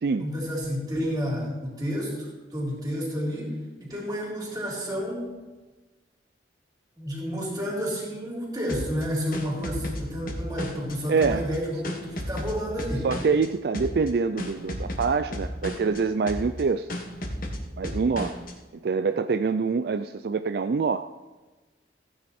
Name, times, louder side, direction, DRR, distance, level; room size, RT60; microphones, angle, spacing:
voice 1, 0.2-5.3 7.0-13.1, equal, 20° right, -4 dB, 3.8 m, -30 dB
sound 1, 8.7-10.9 11.2-13.5 13.7-14.1 14.4-16.0 16.3-16.6 16.9-18.5, equal, 50° left, 1.6 m, -33 dB
voice 2, 11.1-11.5 13.0-16.9 17.8-18.4 18.8-21.1, right 5 dB, 60° right, 10 dB, 0.4 m, -25 dB
15.5 x 9.5 x 4.3 m, 1.2 s
head